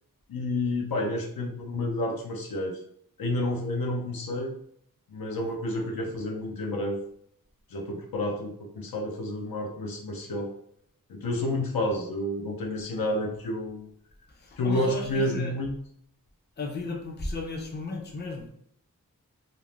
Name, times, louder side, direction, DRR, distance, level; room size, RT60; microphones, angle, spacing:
voice 1, 0.3-2.8 3.2-4.5 5.1-7.0 7.7-10.5 11.1-13.9 14.6-15.8, left 1 dB, 80° left, 0 dB, 0.6 m, -30 dB
voice 2, 14.4-15.5 16.6-18.5, left 3 dB, 30° left, 1 dB, 0.5 m, -35 dB
2.6 x 2.0 x 3.1 m, 0.66 s
wide cardioid pair, 95°, 35 cm